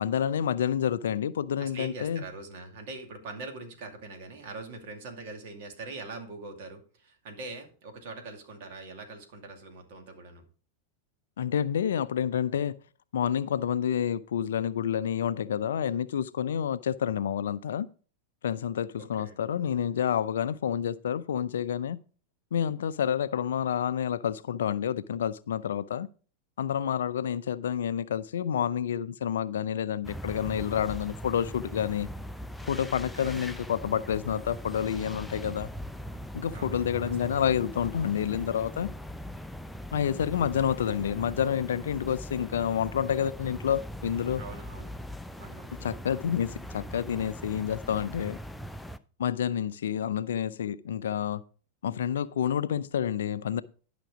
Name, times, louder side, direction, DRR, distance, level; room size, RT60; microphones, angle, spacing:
voice 1, 0.0-2.2 11.4-12.8 13.1-17.9 18.4-22.0 22.5-26.1 26.6-32.1 32.6-35.7 36.3-38.9 39.9-44.4 45.8-48.4 49.2-51.4 51.8-53.6, left 9 dB, 65° left, 0.4 m, -29 dB
voice 2, 1.6-10.4 18.9-19.4 33.1-33.5 36.5-36.7 44.4-44.9 45.4-45.8, right 3 dB, 50° right, 2.4 m, -43 dB
sound 1, 30.0-49.0, equal, 5° left, 0.5 m, -40 dB
11.5 x 6.0 x 4.9 m
figure-of-eight pair, 90°, 0 cm